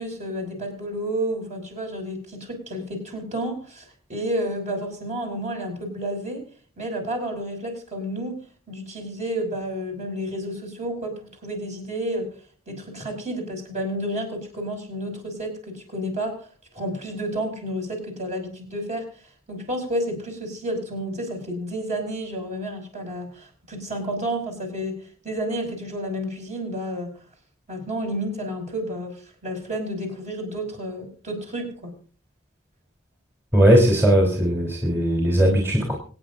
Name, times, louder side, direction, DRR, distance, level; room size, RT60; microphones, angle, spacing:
voice 1, 0.0-6.4 6.8-8.4 8.7-12.3 12.7-16.5 16.7-19.1 19.5-27.1 27.7-31.9, equal, 35° right, 2 dB, 5.8 m, -30 dB
voice 2, 33.5-36.0, right 1 dB, 10° right, -1 dB, 3.2 m, -18 dB
25.5 x 9.7 x 2.5 m, 0.40 s
head